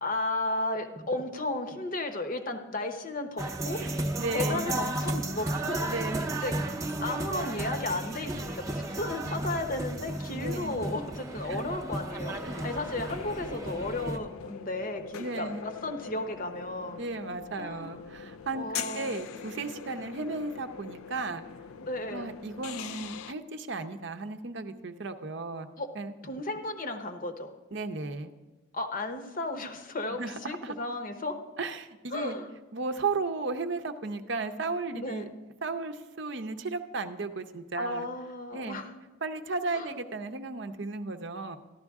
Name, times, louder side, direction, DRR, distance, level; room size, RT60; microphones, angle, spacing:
voice 1, 0.0-3.8 4.3-5.9 6.4-6.5 7.0-17.0 17.6-18.0 18.5-19.2 21.8-22.3 25.8-25.9 26.2-27.5 28.7-31.4 32.1-32.5 34.9-35.3 37.8-38.9 39.7-39.9, left 2 dB, 40° left, 5 dB, 0.9 m, -34 dB
sound 1, 3.4-14.2, right 1 dB, 15° right, 0.7 m, -34 dB
voice 2, 3.8-4.7 5.9-6.3 10.3-10.8 11.4-11.7 12.4-12.6 15.2-15.7 17.0-21.4 22.1-25.7 26.0-26.1 27.7-28.3 30.2-30.7 31.6-32.4 32.7-35.3 35.6-38.1 38.5-38.8 39.2-41.6, right 3 dB, 60° right, 8 dB, 0.6 m, -35 dB
sound 2, 12.2-23.3, left 8 dB, 85° left, 0.4 m, -43 dB
13.5 x 11.5 x 3.6 m, 1.2 s
head